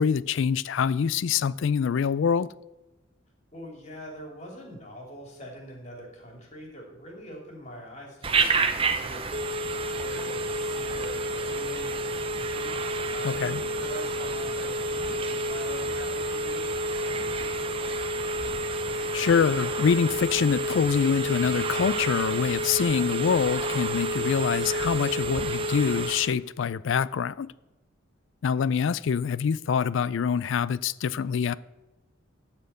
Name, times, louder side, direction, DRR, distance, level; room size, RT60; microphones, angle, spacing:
voice 1, 0.0-2.5 13.2-13.6 18.9-27.5 28.4-31.5, left 6 dB, 65° left, 0.3 m, -25 dB
voice 2, 3.5-9.2 10.0-12.8 13.1-18.0, equal, 35° left, 2.7 m, -43 dB
Telephone, 8.2-26.3, right 2 dB, 25° right, 0.6 m, -29 dB
12.5 x 4.4 x 8.0 m
head